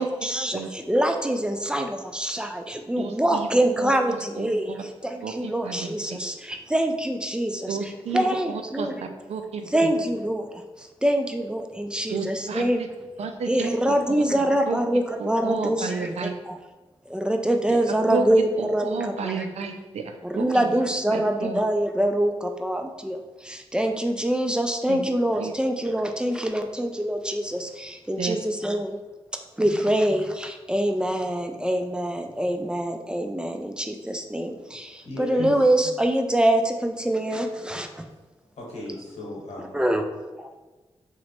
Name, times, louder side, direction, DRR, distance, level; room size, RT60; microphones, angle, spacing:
voice 1, 0.0-9.0 9.7-12.8 13.5-16.6 17.1-19.5 20.2-28.9 29.6-38.0 39.7-40.0 40.4-40.5, right 1 dB, 10° right, 5 dB, 0.3 m, -25 dB
voice 2, 3.0-4.8 5.2-6.2 7.7-9.7 12.1-12.6 13.2-14.2 14.7-14.8 15.2-16.4 17.7-17.8 18.1-18.2 18.6-20.8 21.1-21.6 24.9-25.0 25.4-25.5 28.2-28.4 29.7-29.8 35.4-35.5, right 5 dB, 85° right, 6 dB, 0.4 m, -32 dB
voice 3, 35.0-35.5 38.6-39.8, left 1 dB, 90° left, -4 dB, 1.0 m, -36 dB
2.9 x 2.1 x 4.1 m, 1.2 s
cardioid pair, 60°, 11 cm